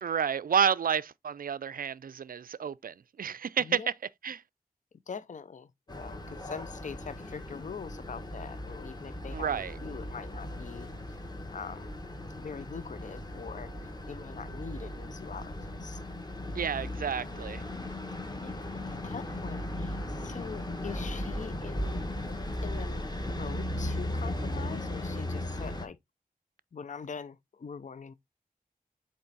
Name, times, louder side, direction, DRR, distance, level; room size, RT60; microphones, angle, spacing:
voice 1, 0.0-3.9 4.2-4.4 9.3-9.8 16.6-17.6, right 7 dB, 70° right, 0.4 m, -30 dB
voice 2, 3.6-3.9 5.1-5.7 6.0-11.2 11.5-11.9 12.4-16.0 18.4-22.0 22.6-26.0 26.7-28.1, left 6 dB, 55° left, 0.5 m, -43 dB
sound 1, 5.9-25.9, left 1 dB, 25° left, 1.4 m, -37 dB
8.4 x 3.2 x 4.0 m
wide cardioid pair, 90°, 15 cm